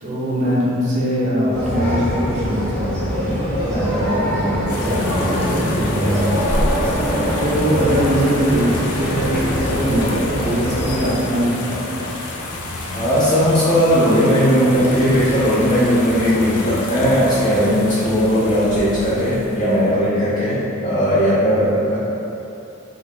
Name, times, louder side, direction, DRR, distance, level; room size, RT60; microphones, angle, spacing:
voice 1, 0.0-12.1, equal, 35° right, -7 dB, 0.5 m, -22 dB
sound 1, 1.5-11.1, equal, 5° left, 0.9 m, -23 dB
sound 2, 4.7-19.9, left 2 dB, 85° left, 0.5 m, -30 dB
voice 2, 12.9-22.0, equal, 25° left, -11 dB, 0.5 m, -17 dB
3.2 x 2.4 x 3.4 m, 2.9 s
head